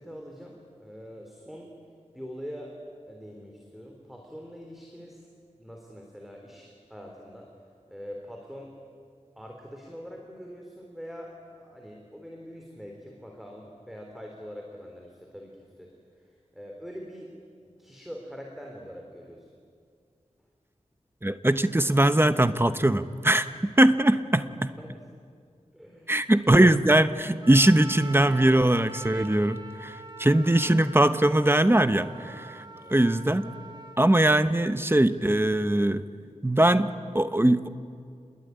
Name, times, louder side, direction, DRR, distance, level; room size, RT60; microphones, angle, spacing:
voice 1, 0.0-1.7 2.1-2.8 3.1-5.3 5.6-7.5 7.9-8.7 9.4-17.3 17.6-19.5 24.8-25.1 25.7-26.2 32.8-33.0, equal, ahead, 0 dB, 3.8 m, -43 dB
voice 2, 21.2-24.4 26.1-32.6 32.9-33.5 34.0-36.0 36.4-37.7, right 1 dB, 20° right, 11 dB, 1.0 m, -21 dB
Trumpet, 27.4-34.0, right 2 dB, 35° right, 2.2 m, -43 dB
27.5 x 21.0 x 9.6 m, 2.2 s
wide cardioid pair, 70°, 13 cm